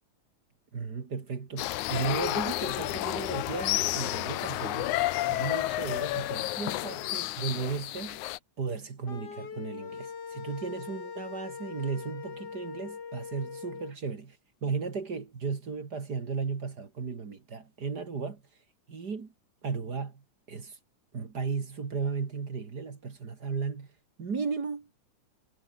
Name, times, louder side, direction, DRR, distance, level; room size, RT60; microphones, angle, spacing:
voice 1, 0.7-4.9 5.3-8.2 8.6-14.4 14.6-18.4 18.9-19.3 19.6-20.8 21.1-23.9 24.2-24.9, right 5 dB, 35° right, 2.3 m, -35 dB
sound 1, 1.6-8.4, left 16 dB, 90° left, 2.3 m, -31 dB
sound 2, 9.1-13.9, left 6 dB, 55° left, 4.0 m, -41 dB
omnidirectional pair, 3.4 m